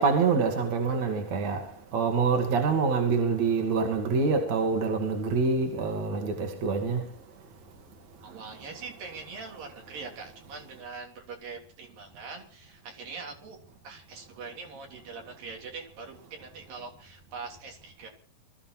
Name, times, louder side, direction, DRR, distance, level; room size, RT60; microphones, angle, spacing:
voice 1, 0.0-1.6 1.9-7.1, right 4 dB, 50° right, 3.3 m, -26 dB
voice 2, 8.2-13.6 13.8-18.1, right 4 dB, 65° right, 4.9 m, -42 dB
23.0 x 14.0 x 4.4 m
omnidirectional pair, 4.3 m